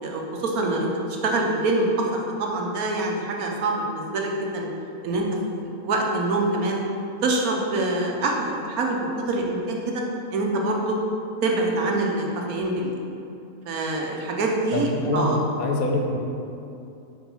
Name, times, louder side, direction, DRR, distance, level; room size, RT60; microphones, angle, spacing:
voice 1, 0.0-0.9 1.2-2.0 2.4-4.7 5.0-5.3 5.6-6.8 7.2-10.0 10.3-11.0 11.4-13.0 13.7-14.9 15.1-15.4, right 2 dB, 85° right, 0 dB, 1.3 m, -25 dB
voice 2, 14.7-16.2, left 2 dB, 80° left, 2 dB, 1.2 m, -25 dB
5.1 x 4.4 x 5.4 m, 2.7 s
omnidirectional pair, 1.5 m